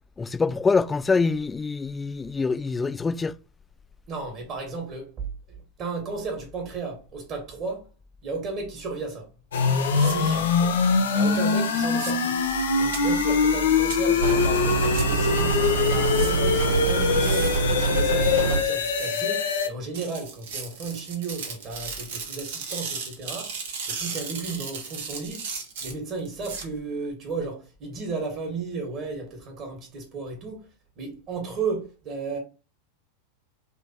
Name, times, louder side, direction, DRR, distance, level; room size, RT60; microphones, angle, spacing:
voice 1, 0.2-3.3, left 4 dB, 15° left, 0.3 m, -25 dB
voice 2, 4.1-5.3 5.8-7.9 8.2-9.3 9.9-10.7 11.1-12.4 12.8-23.5 23.9-25.5 25.8-30.6 31.0-32.4, right 4 dB, 35° right, 1.6 m, -34 dB
sound 1, 9.5-19.7, left 5 dB, 60° left, 0.7 m, -23 dB
sound 2, 9.9-10.2 11.9-12.1 12.9-13.0 13.9-14.0 14.9-15.0 16.0-16.3 17.0-17.6 18.9-19.2 19.9-26.6, right 5 dB, 55° right, 1.2 m, -35 dB
sound 3, 14.2-18.6, right 4 dB, 70° right, 1.3 m, -24 dB
3.4 x 3.0 x 4.3 m
figure-of-eight pair, 90°, 0 cm